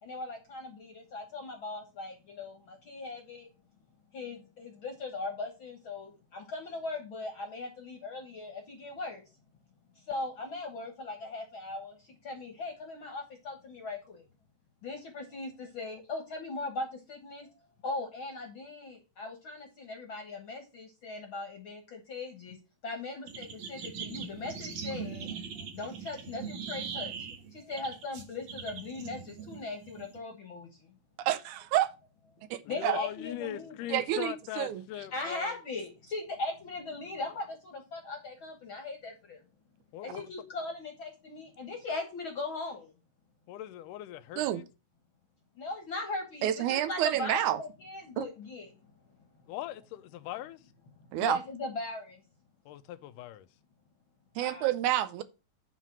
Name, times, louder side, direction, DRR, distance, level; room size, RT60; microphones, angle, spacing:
voice 1, 0.0-3.5 4.1-9.2 10.0-12.0 12.2-14.2 14.8-17.5 17.8-22.6 22.8-25.3 25.7-27.1 27.5-30.9 32.7-33.7 35.1-39.4 40.0-42.9 45.6-48.7 51.1-52.2 54.4-54.7, left 3 dB, 50° left, 1.6 m, -39 dB
sound 1, 23.3-30.2, right 6 dB, 55° right, 1.5 m, -41 dB
voice 2, 31.2-31.9 32.5-33.0 33.9-34.8 44.4-44.6 46.4-47.6 48.2-48.3 51.1-51.4 54.4-55.2, right 12 dB, 75° right, 1.9 m, -29 dB
voice 3, 32.6-35.6 39.9-40.3 43.5-44.7 49.5-50.6 52.7-53.5, left 13 dB, 85° left, 2.2 m, -40 dB
9.2 x 4.1 x 6.0 m
omnidirectional pair, 3.8 m